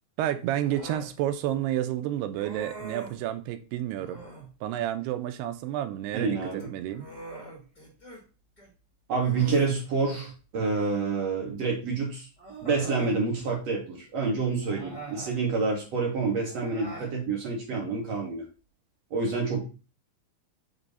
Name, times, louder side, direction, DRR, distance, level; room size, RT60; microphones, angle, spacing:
voice 1, 0.2-4.2 4.6-7.1, right 12 dB, 85° right, 2.7 m, -30 dB
Human voice, 0.6-1.1 2.3-3.2 4.0-4.5 6.4-8.2 8.6-8.7 9.2-10.4 11.6-11.7 12.4-13.2 14.6-15.4 16.5-17.1, right 2 dB, 20° left, 1.1 m, -43 dB
voice 2, 6.1-6.7 9.1-12.3 12.6-18.5 19.1-19.6, right 4 dB, 60° right, 1.9 m, -28 dB
6.8 x 3.0 x 5.2 m
omnidirectional pair, 4.7 m